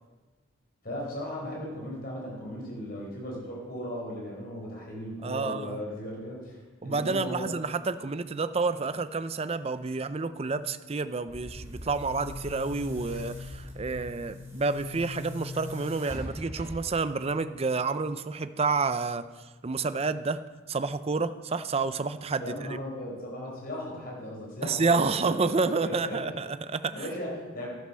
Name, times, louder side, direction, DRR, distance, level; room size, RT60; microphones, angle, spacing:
voice 1, 0.8-6.5 6.8-7.5 22.4-26.4 26.9-27.7, equal, 45° left, -3 dB, 4.8 m, -37 dB
voice 2, 5.2-5.8 6.8-19.2 19.6-20.4 20.7-22.4 24.6-27.1, right 4 dB, 30° right, 12 dB, 0.5 m, -29 dB
Boom, 11.3-17.1, left 2 dB, 15° right, 3.4 m, -40 dB
11.5 x 9.7 x 6.3 m, 1.3 s
head